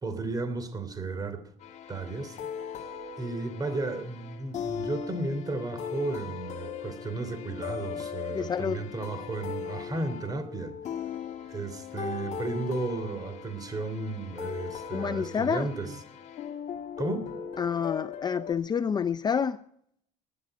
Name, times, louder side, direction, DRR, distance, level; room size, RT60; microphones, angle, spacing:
voice 1, 0.0-1.4 1.9-2.4 3.2-10.7 11.5-16.0 17.0-17.3, right 3 dB, 25° right, 10 dB, 3.1 m, -34 dB
sound 1, 1.6-18.5, left 7 dB, 55° left, 1.5 m, -39 dB
voice 2, 8.3-8.8 14.9-15.7 17.6-19.6, left 7 dB, 30° left, 13 dB, 0.5 m, -28 dB
21.0 x 9.7 x 4.9 m, 0.67 s
cardioid pair, 110°, 14 cm